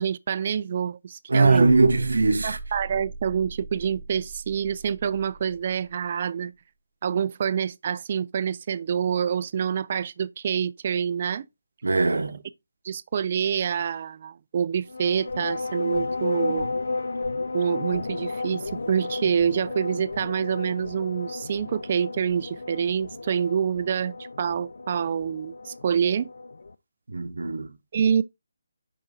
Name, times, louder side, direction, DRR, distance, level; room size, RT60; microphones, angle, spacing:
voice 1, 0.0-1.7 2.4-6.5 7.0-11.5 12.8-16.7 17.5-26.3 27.9-28.2, right 7 dB, 40° right, 0.3 m, -26 dB
voice 2, 1.3-2.6 11.8-12.4 27.1-27.7, right 3 dB, 75° right, 0.8 m, -21 dB
sound 1, 1.4-6.1, right 3 dB, 5° right, 0.7 m, -40 dB
sound 2, 14.8-26.7, left 3 dB, 70° left, 0.4 m, -33 dB
7.0 x 5.5 x 2.5 m
figure-of-eight pair, 155°, 0 cm